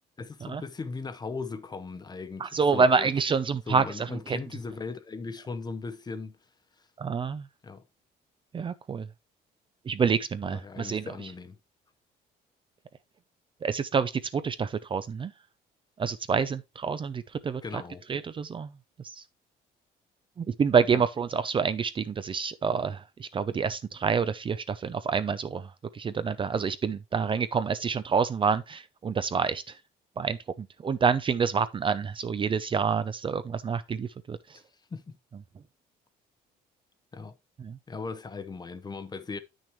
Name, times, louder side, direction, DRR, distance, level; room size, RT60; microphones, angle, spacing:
voice 1, 0.2-3.1 3.7-6.4 6.8-6.9 7.6-7.8 10.4-11.6 17.6-18.0 20.9-21.1 34.5-34.6 34.9-35.2 37.1-37.4 37.9-39.4, left 4 dB, 25° left, 0.8 m, -38 dB
voice 2, 2.4-4.4 7.0-7.4 8.5-9.1 9.9-11.1 13.6-15.3 16.0-17.6 18.1-18.7 20.4-25.7 25.9-29.6 30.2-34.4 37.6-37.8, right 5 dB, 30° right, 0.5 m, -27 dB
8.7 x 6.3 x 3.1 m
cardioid pair, 110°, 17 cm